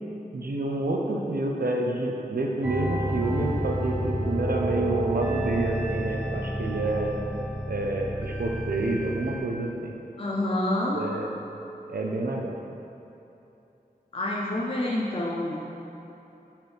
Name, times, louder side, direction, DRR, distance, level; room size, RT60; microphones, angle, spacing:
voice 1, 0.3-7.1 7.7-9.9 10.9-11.4 11.9-12.6, right 2 dB, 70° right, 0 dB, 0.7 m, -28 dB
sound 1, 2.6-9.4, right 1 dB, 10° right, 1.0 m, -30 dB
voice 2, 10.2-11.0 14.1-15.6, left 1 dB, 35° left, -5 dB, 0.7 m, -27 dB
5.9 x 5.7 x 3.4 m, 2.9 s
wide cardioid pair, 60°, 16 cm